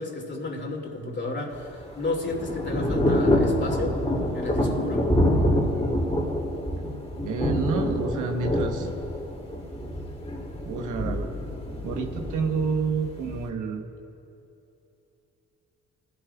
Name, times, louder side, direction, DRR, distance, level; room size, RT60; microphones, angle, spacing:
voice 1, 0.0-1.7 2.0-4.0 4.3-5.1, left 2 dB, 35° left, 0 dB, 2.7 m, -32 dB
Thunder / Rain, 1.5-13.5, left 1 dB, 20° left, 2.6 m, -26 dB
voice 2, 7.2-8.9 10.6-11.3 11.8-13.8, right 5 dB, 75° right, 4 dB, 1.1 m, -29 dB
20.5 x 12.0 x 2.4 m, 2.7 s
supercardioid pair, 60°, 30 cm